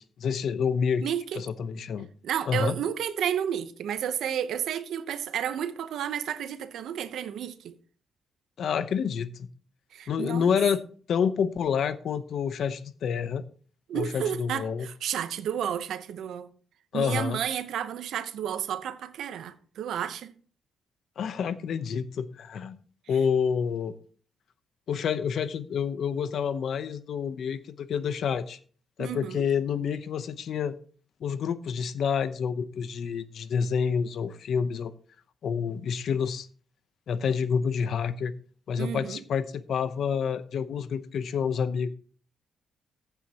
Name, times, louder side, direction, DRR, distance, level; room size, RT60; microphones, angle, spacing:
voice 1, 0.0-2.1 2.5-2.8 8.6-9.5 10.1-10.8 11.1-13.4 13.9-14.9 16.9-17.4 21.2-22.8 23.1-23.9 24.9-28.6 29.0-30.8 31.2-34.9 35.4-36.5 37.1-38.3 38.7-41.9, left 7 dB, 60° left, 0.8 m, -28 dB
voice 2, 1.0-1.4 2.2-7.7 9.9-10.5 13.9-16.5 16.9-20.3 29.0-29.4 38.8-39.2, right 9 dB, 80° right, 0.8 m, -31 dB
15.0 x 7.9 x 2.9 m
cardioid pair, 150°, 0 cm